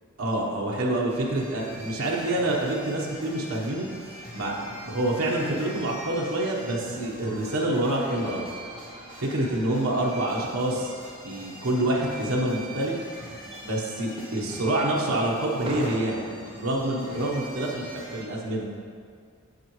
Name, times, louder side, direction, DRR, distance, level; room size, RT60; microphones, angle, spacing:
voice 1, 0.2-4.1 4.3-8.5 9.2-10.9 11.2-12.9 13.6-16.2 16.5-18.7, right 1 dB, 80° right, -3 dB, 1.0 m, -27 dB
sound 1, 1.1-18.2, right 1 dB, 25° left, 1.9 m, -43 dB
sound 2, 3.7-17.8, right 1 dB, 25° right, 0.8 m, -47 dB
7.7 x 7.2 x 3.1 m, 2.1 s
head